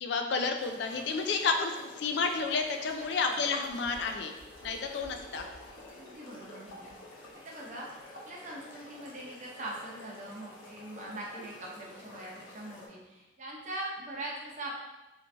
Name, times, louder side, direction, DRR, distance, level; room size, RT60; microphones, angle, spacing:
voice 1, 0.0-4.3 4.6-5.4, left 4 dB, 60° left, 5 dB, 0.3 m, -31 dB
sound 1, 0.6-12.9, left 1 dB, 85° left, 0.7 m, -50 dB
voice 2, 5.9-6.9 7.4-7.9 8.2-14.7, right 1 dB, 40° right, -3 dB, 0.7 m, -42 dB
3.0 x 2.8 x 3.2 m, 1.0 s
head